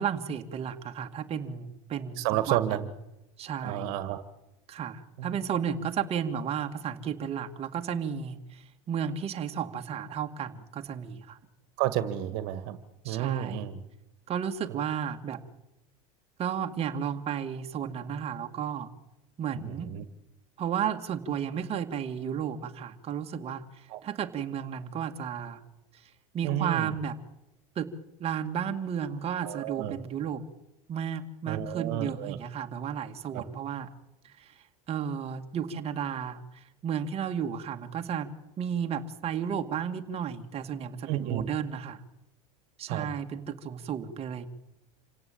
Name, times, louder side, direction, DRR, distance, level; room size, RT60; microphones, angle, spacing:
voice 1, 0.0-2.8 3.4-3.9 4.7-11.4 13.0-13.7 14.3-15.4 16.4-18.9 19.4-19.9 20.6-25.6 26.3-27.2 27.8-27.9 28.2-30.4 30.9-33.9 34.2-42.0 42.8-44.5, right 8 dB, 35° right, 5 dB, 2.0 m, -33 dB
voice 2, 2.2-2.9 3.6-4.2 5.2-5.4 11.8-12.8 13.0-13.8 14.7-14.8 19.5-20.0 23.9-24.0 26.4-26.9 29.4-30.0 31.5-32.4 33.3-33.4 41.1-41.5 42.9-43.1, right 13 dB, 65° right, 12 dB, 1.8 m, -31 dB
27.5 x 17.0 x 8.6 m, 0.94 s
supercardioid pair, 115°, 18 cm